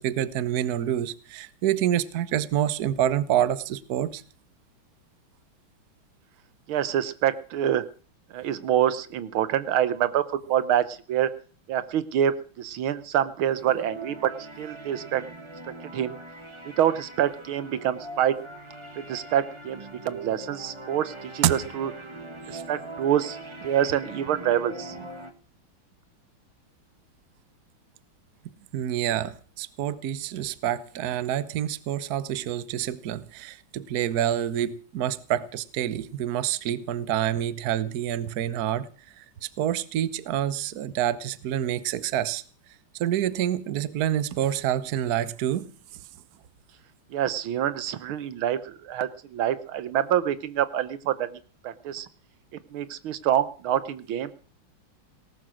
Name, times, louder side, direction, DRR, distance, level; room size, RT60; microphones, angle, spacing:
voice 1, 0.0-4.2 21.4-21.5 22.5-22.6 28.7-38.9 39.2-42.4 43.0-45.7, right 11 dB, 55° right, 1.2 m, -27 dB
voice 2, 6.7-7.8 8.3-11.3 11.7-14.3 14.6-15.2 15.8-16.2 16.8-18.4 19.0-21.9 22.5-25.0 47.1-52.1 52.7-54.3, right 10 dB, 85° right, 1.8 m, -26 dB
sound 1, 13.6-25.3, right 2 dB, 15° right, 1.3 m, -42 dB
18.5 x 12.5 x 6.3 m
omnidirectional pair, 2.2 m